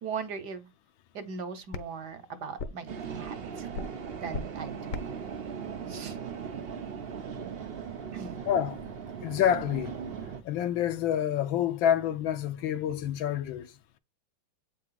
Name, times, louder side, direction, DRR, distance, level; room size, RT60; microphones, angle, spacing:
voice 1, 0.0-0.7 1.1-3.7 4.2-5.0 5.9-6.2 8.1-8.4, right 6 dB, 60° right, 1.4 m, -39 dB
sound 1, 0.7-7.1, left 3 dB, 55° left, 1.0 m, -43 dB
sound 2, 2.9-10.4, right 7 dB, 80° right, 0.5 m, -38 dB
voice 2, 8.5-8.8 9.2-9.9 10.4-13.7, left 10 dB, 75° left, 1.5 m, -27 dB
8.3 x 4.6 x 3.9 m
omnidirectional pair, 2.2 m